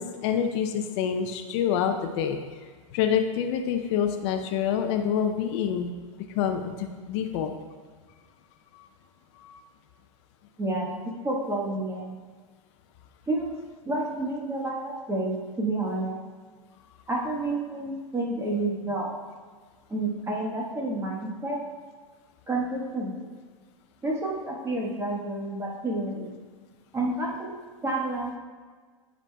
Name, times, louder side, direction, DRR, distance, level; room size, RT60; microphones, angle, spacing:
voice 1, 0.0-2.4 2.9-5.9 6.3-7.5 8.7-8.9 9.4-9.6, left 8 dB, 55° left, 6 dB, 0.5 m, -27 dB
voice 2, 10.6-12.2 13.3-13.5 13.8-16.2 17.1-19.1 19.9-21.6 22.5-23.3 24.0-26.3 26.9-28.4, right 2 dB, 15° right, -2 dB, 1.2 m, -30 dB
9.6 x 5.0 x 2.2 m, 1.5 s
hypercardioid pair, 110°, 18 cm